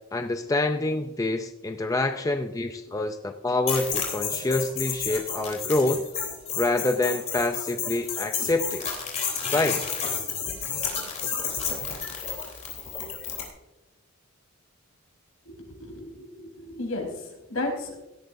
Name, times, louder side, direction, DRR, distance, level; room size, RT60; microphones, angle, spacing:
voice 1, 0.1-6.0 6.6-8.9 9.5-9.8, left 2 dB, 15° left, 6 dB, 0.4 m, -26 dB
sound 1, 3.7-13.5, left 6 dB, 30° left, 3.5 m, -31 dB
voice 2, 15.4-18.0, left 2 dB, 75° left, 0 dB, 4.6 m, -34 dB
17.0 x 13.5 x 2.6 m, 0.99 s
head